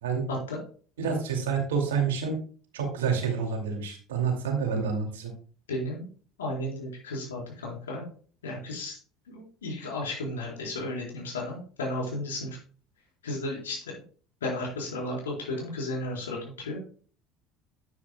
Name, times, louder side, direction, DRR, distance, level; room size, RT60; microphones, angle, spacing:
voice 1, 0.3-0.6 1.0-1.1 5.7-6.1 6.4-8.1 8.4-9.0 9.3-12.6 13.2-13.9 14.4-16.9, left 1 dB, 85° left, -2 dB, 4.2 m, -34 dB
voice 2, 1.0-2.4 2.7-5.3, right 6 dB, 80° right, 3 dB, 2.4 m, -28 dB
9.7 x 9.5 x 2.3 m, 0.41 s
hypercardioid pair, 65°, 0 cm